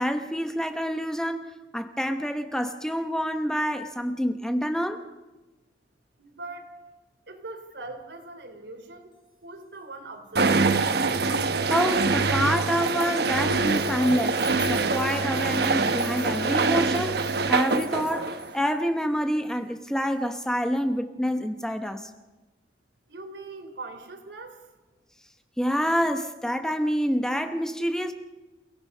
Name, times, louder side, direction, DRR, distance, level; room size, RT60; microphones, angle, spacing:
voice 1, 0.0-1.5 1.7-5.0 11.7-22.1 25.6-28.1, equal, 5° left, 0.9 m, -27 dB
voice 2, 6.2-6.8 7.3-9.2 9.4-10.9 23.1-24.6, right 2 dB, 75° right, 3.5 m, -41 dB
sound 1, 10.4-18.6, right 3 dB, 60° right, 1.1 m, -24 dB
sound 2, 13.7-18.8 19.4-19.5 19.9-20.0 20.8-20.9, left 6 dB, 25° left, 2.5 m, -45 dB
29.5 x 17.5 x 5.6 m
head